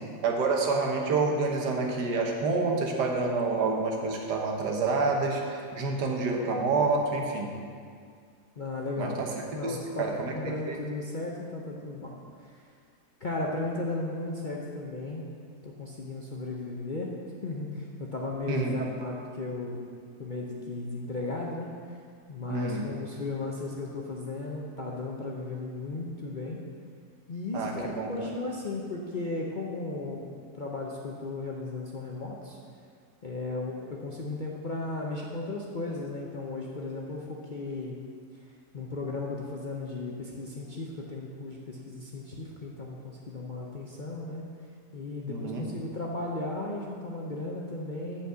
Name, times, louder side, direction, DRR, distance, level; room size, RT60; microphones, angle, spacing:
voice 1, 0.2-7.5 9.0-9.3 9.6-10.3 10.7-10.8 18.5-18.8 22.5-22.8 27.5-28.1 45.3-45.7, right 3 dB, 80° right, 1 dB, 1.7 m, -28 dB
voice 2, 8.6-9.2 9.5-12.7 13.2-15.2 15.6-17.1 17.4-19.8 20.2-22.0 22.3-26.6 27.3-32.6 33.2-38.0 38.7-44.4 44.9-48.3, left 2 dB, 45° left, -2 dB, 0.6 m, -35 dB
8.3 x 5.2 x 7.7 m, 2.2 s
omnidirectional pair, 1.8 m